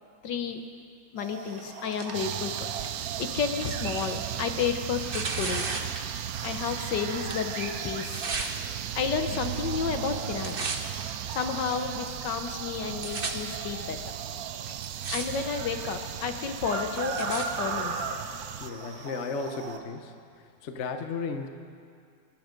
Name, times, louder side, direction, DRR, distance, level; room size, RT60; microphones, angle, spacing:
voice 1, 0.2-0.6 1.1-2.7 3.2-5.7 6.4-8.6 8.9-10.7 11.3-14.2 14.7-14.8 15.1-18.1, left 6 dB, 65° left, 6 dB, 1.5 m, -31 dB
sound 1, 1.2-19.8, right 4 dB, 50° right, 1.4 m, -40 dB
Tearing, 1.4-6.9 7.2-8.5 9.3-9.8 10.1-11.0 11.7-11.8 12.5-12.6 12.7-13.3 14.1-14.2 14.7-15.3 15.6-16.0 16.6-17.5 18.2-18.3, right 4 dB, 35° right, 1.0 m, -37 dB
sound 2, 2.1-18.7, right 12 dB, 85° right, 0.8 m, -36 dB
voice 2, 18.6-20.1 20.6-21.5, left 4 dB, 45° left, 6 dB, 1.0 m, -34 dB
24.0 x 11.5 x 5.2 m, 2.3 s
omnidirectional pair, 2.1 m